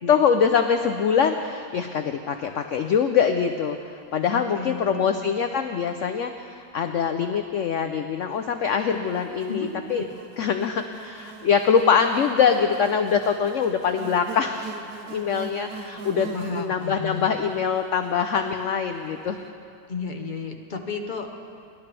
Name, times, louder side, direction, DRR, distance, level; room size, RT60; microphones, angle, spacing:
voice 1, 0.1-10.1 10.4-14.7 15.1-19.4, left 6 dB, 85° left, 7 dB, 0.6 m, -23 dB
voice 2, 4.3-5.2 9.5-10.0 16.3-17.3 19.9-21.3, left 4 dB, 50° left, 4 dB, 0.5 m, -33 dB
Buzz, 8.7-19.1, right 4 dB, 60° right, 1.0 m, -42 dB
24.0 x 11.5 x 3.3 m, 2.4 s
omnidirectional pair, 1.9 m